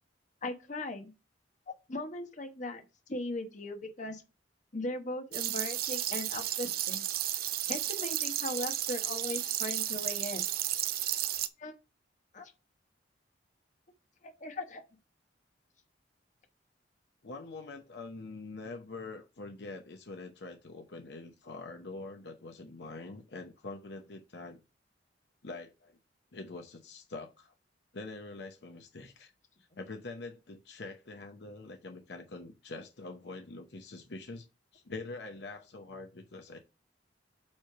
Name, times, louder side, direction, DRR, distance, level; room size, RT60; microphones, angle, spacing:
voice 1, 0.4-1.1 1.7-2.8 3.1-4.2 4.7-7.1 7.7-10.4 11.6-11.7 12.3-12.5 14.2-14.8, left 2 dB, 45° left, 1.1 m, -38 dB
sound 1, 5.3-11.5, right 12 dB, 55° right, 0.5 m, -33 dB
voice 2, 17.2-24.6 25.4-26.0 26.3-27.5 27.9-29.3 29.6-34.5 34.7-36.6, left 3 dB, 70° left, 0.8 m, -44 dB
7.4 x 3.2 x 5.8 m
head